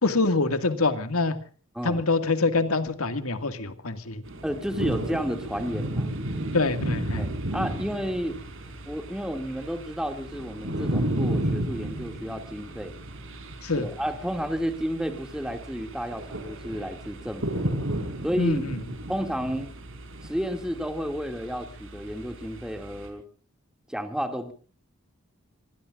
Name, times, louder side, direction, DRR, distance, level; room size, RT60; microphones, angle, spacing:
voice 1, 0.0-1.4 1.8-4.2 6.5-7.2 13.6-13.9 18.4-18.8, left 3 dB, 85° left, 9 dB, 2.1 m, -25 dB
sound 1, 4.2-23.1, right 1 dB, 65° right, 5.1 m, -33 dB
voice 2, 4.4-6.1 7.2-8.4 8.9-13.0 13.7-17.4 18.2-18.7 19.1-19.7 20.2-23.2 23.9-24.5, equal, 5° right, 7 dB, 2.4 m, -31 dB
26.5 x 20.5 x 2.5 m, 0.40 s
head